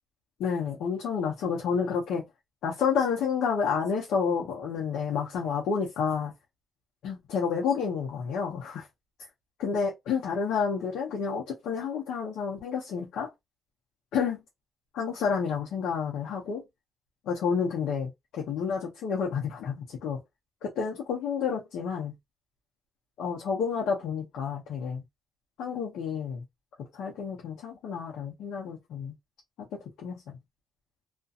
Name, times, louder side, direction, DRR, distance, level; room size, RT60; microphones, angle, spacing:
voice 1, 0.4-2.3 2.6-6.3 7.0-8.9 9.6-13.3 14.1-14.4 14.9-16.7 17.2-20.2 20.6-22.2 23.2-25.0 25.6-26.4 26.8-29.1 29.6-30.4, left 6 dB, 85° left, 0.7 m, -30 dB
2.4 x 2.2 x 2.7 m
cardioid pair, 90°, 0 cm